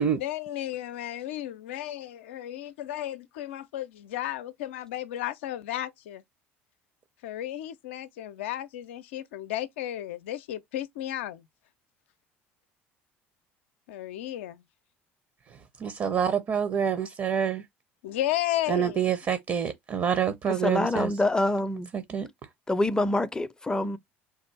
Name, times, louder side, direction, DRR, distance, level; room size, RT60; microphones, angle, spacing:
voice 1, 0.2-6.2 7.2-11.5 13.9-14.6 18.0-19.1, left 13 dB, 70° left, 0.5 m, -33 dB
voice 2, 15.8-17.6 18.7-21.1 21.9-22.3, right 8 dB, 40° right, 0.7 m, -27 dB
voice 3, 20.5-21.9 22.7-24.0, left 2 dB, 10° left, 0.5 m, -26 dB
3.6 x 2.4 x 4.5 m
figure-of-eight pair, 60°, 7 cm